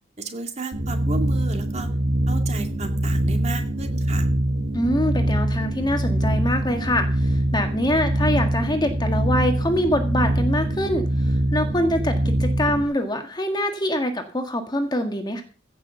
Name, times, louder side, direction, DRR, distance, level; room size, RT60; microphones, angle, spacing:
voice 1, 0.2-1.9 2.3-4.3, right 3 dB, 35° right, 5 dB, 2.2 m, -33 dB
sound 1, 0.7-12.8, right 1 dB, 75° right, 1.9 m, -23 dB
voice 2, 4.7-15.4, left 1 dB, 20° left, 5 dB, 1.6 m, -24 dB
16.0 x 6.2 x 6.9 m, 0.38 s
head